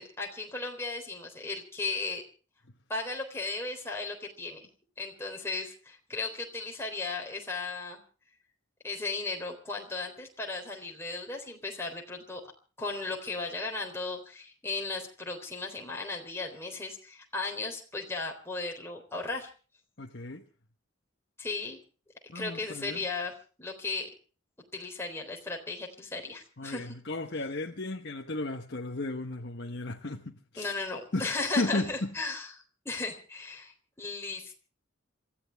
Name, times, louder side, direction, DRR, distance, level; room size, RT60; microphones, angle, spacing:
voice 1, 0.0-2.2 2.9-4.6 5.0-8.0 8.8-12.4 12.8-19.5 21.4-21.8 22.3-23.3 23.6-24.1 24.7-26.9 30.6-32.5 32.9-34.6, left 3 dB, 10° left, 3.8 m, -36 dB
voice 2, 20.0-20.4 22.3-23.0 26.6-30.7 31.1-32.1, left 2 dB, 55° left, 1.2 m, -34 dB
27.5 x 15.0 x 3.5 m
head